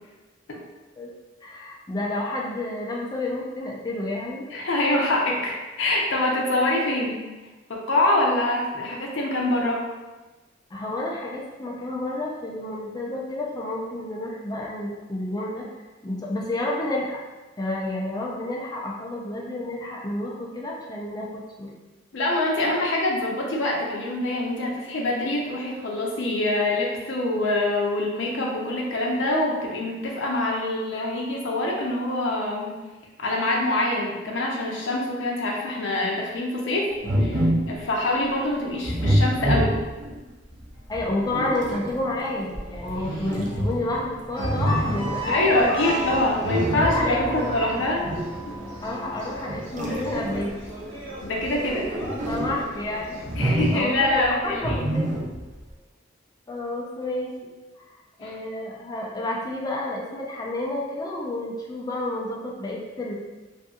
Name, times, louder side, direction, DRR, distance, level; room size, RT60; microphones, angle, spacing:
voice 1, 1.4-4.5 10.7-15.7 16.0-17.2 17.6-21.7 40.9-45.9 46.8-47.6 48.8-50.6 52.1-55.1 56.5-57.5 57.8-57.9 58.2-63.1, left 1 dB, 20° left, -2 dB, 0.4 m, -30 dB
voice 2, 4.5-7.2 7.7-9.8 22.1-32.7 33.2-36.9 37.2-39.7 45.3-48.0 48.5-48.6 51.2-51.9 53.4-54.8 58.2-58.4, left 1 dB, 70° left, -2 dB, 0.6 m, -25 dB
sound 1, 37.0-37.8 38.8-40.2 40.9-41.9 43.0-44.0 44.4-45.2 46.4-47.2 48.0-48.4 49.5-50.6 51.4-52.6 53.2-54.0 54.6-55.5, equal, 40° right, 0.5 m, -26 dB
sound 2, 40.7-50.7 53.8-55.6, equal, 20° right, 1.0 m, -42 dB
sound 3, 44.3-53.8, right 1 dB, 80° right, 1.1 m, -35 dB
2.6 x 2.5 x 2.3 m, 1.2 s
head